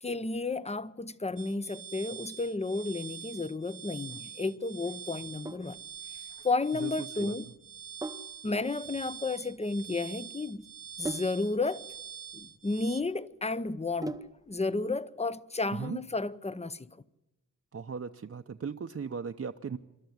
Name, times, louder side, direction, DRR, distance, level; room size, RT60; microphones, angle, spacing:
voice 1, 0.0-5.8 6.4-7.5 8.4-10.6 11.0-11.8 12.3-14.2 14.5-16.9, left 3 dB, 20° left, 0.7 m, -32 dB
sound 1, 1.4-13.0, right 8 dB, 80° right, 1.2 m, -45 dB
Sink (filling or washing), 5.1-14.6, right 2 dB, 10° right, 0.8 m, -44 dB
voice 2, 6.8-7.4 15.7-16.0 17.7-19.8, right 6 dB, 45° right, 0.7 m, -37 dB
25.5 x 12.5 x 9.4 m
wide cardioid pair, 105°, 32 cm